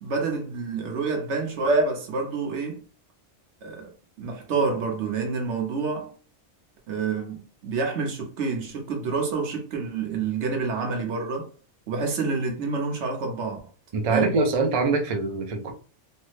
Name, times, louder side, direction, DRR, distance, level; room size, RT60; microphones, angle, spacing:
voice 1, 0.0-2.8 3.6-3.9 4.2-6.1 6.9-11.5 11.9-13.6 14.1-14.4, right 4 dB, 75° right, 1.1 m, -27 dB
voice 2, 13.9-15.7, right 3 dB, 55° right, 0.4 m, -24 dB
3.2 x 2.0 x 3.1 m
omnidirectional pair, 1.2 m